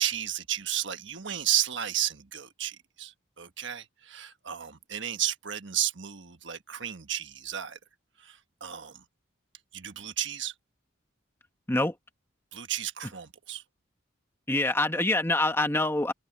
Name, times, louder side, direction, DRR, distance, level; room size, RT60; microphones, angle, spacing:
voice 1, 0.0-7.8 8.2-9.0 9.7-10.5 12.5-13.6, right 11 dB, 65° right, 1.4 m, -33 dB
voice 2, 14.5-16.1, left 2 dB, 10° left, 1.5 m, -25 dB
head